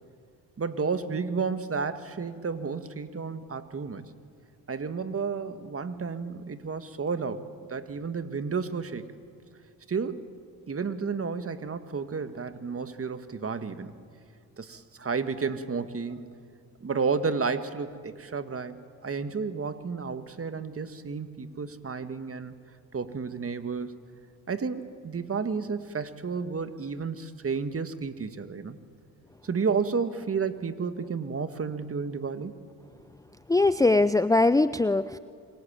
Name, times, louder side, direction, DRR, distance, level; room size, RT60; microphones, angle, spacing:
voice 1, 0.6-4.0 4.7-9.1 9.9-10.2 10.7-13.9 14.6-16.3 16.8-22.5 22.9-24.0 24.5-28.8 29.4-32.5, right 5 dB, 35° right, 10 dB, 1.9 m, -32 dB
voice 2, 33.5-35.2, left 2 dB, 10° left, 14 dB, 0.6 m, -21 dB
25.5 x 23.0 x 8.9 m, 2.2 s
supercardioid pair, 60°, 40 cm